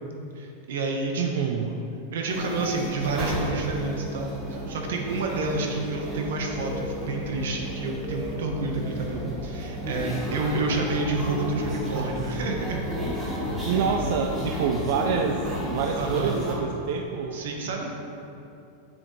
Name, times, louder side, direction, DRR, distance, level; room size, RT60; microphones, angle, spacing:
voice 1, 0.3-1.7 2.1-12.8 15.9-16.4 17.3-17.9, right 3 dB, 85° right, 1 dB, 1.2 m, -29 dB
voice 2, 1.2-1.7 13.6-15.4 15.7-17.4, right 6 dB, 55° right, 3 dB, 0.4 m, -27 dB
sound 1, 2.3-16.5, equal, 15° right, 1.3 m, -32 dB
8.1 x 7.2 x 3.3 m, 2.7 s
supercardioid pair, 180°, 0 cm